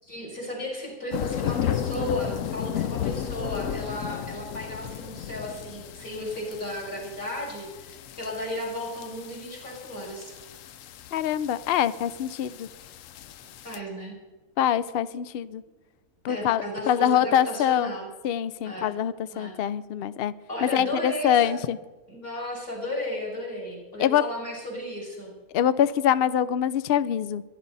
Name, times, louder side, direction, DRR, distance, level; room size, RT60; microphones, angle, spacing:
voice 1, 0.0-10.3 13.4-14.2 16.3-18.1 18.6-19.0 19.3-19.6 20.5-21.5 22.1-25.3, left 1 dB, 35° left, -3 dB, 6.0 m, -34 dB
sound 1, 1.1-13.8, left 10 dB, 65° left, 0.9 m, -34 dB
voice 2, 11.1-12.7 14.6-15.6 16.2-17.9 18.2-20.3 20.6-21.8 24.0-24.2 25.5-27.4, left 10 dB, 80° left, 15 dB, 0.5 m, -24 dB
22.5 x 11.0 x 4.1 m, 1.2 s
omnidirectional pair, 1.6 m